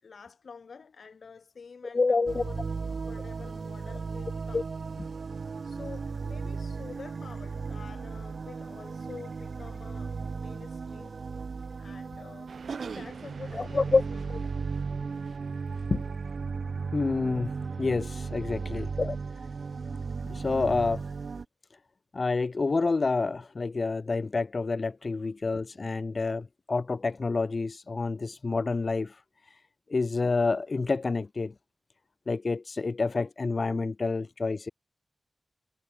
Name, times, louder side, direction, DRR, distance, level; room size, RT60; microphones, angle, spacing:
voice 1, 0.0-2.6 2.9-4.6 5.6-11.2 11.8-14.2 18.7-18.9, left 5 dB, 75° left, 5.2 m, -48 dB
voice 2, 1.9-2.5 4.5-4.6 13.5-14.0 15.9-16.0 16.9-19.5 20.3-21.0 22.1-29.6 29.9-31.5 32.3-34.7, left 3 dB, 45° left, 0.7 m, -28 dB
sound 1, 2.3-21.4, right 5 dB, 70° right, 1.5 m, -36 dB
sound 2, 12.5-16.2, right 5 dB, 85° right, 4.0 m, -44 dB
wide cardioid pair, 105°, 0 cm